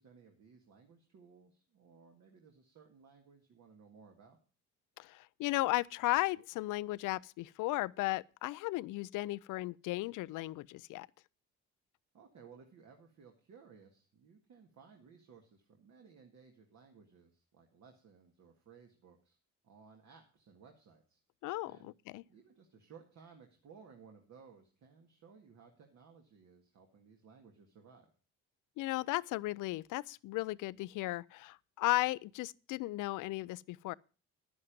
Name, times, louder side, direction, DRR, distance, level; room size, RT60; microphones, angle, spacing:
voice 1, 0.0-4.4 12.1-19.4 19.6-21.2 21.6-21.9 22.2-28.1, right 6 dB, 65° right, 1.9 m, -59 dB
voice 2, 5.0-11.1 21.4-22.2 28.8-33.9, left 19 dB, 90° left, 0.5 m, -35 dB
10.5 x 9.6 x 5.2 m
cardioid pair, 90°, 30 cm